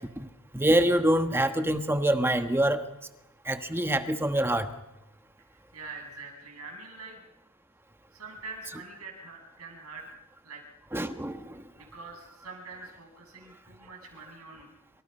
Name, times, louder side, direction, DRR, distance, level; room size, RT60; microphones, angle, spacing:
voice 1, 0.5-2.8 3.4-4.7 10.9-11.6, right 1 dB, 10° right, 8 dB, 1.3 m, -25 dB
voice 2, 5.7-7.2 8.1-10.0 10.4-10.6 11.8-14.7, right 3 dB, 90° right, 2 dB, 7.4 m, -44 dB
28.0 x 26.5 x 5.6 m, 0.93 s
head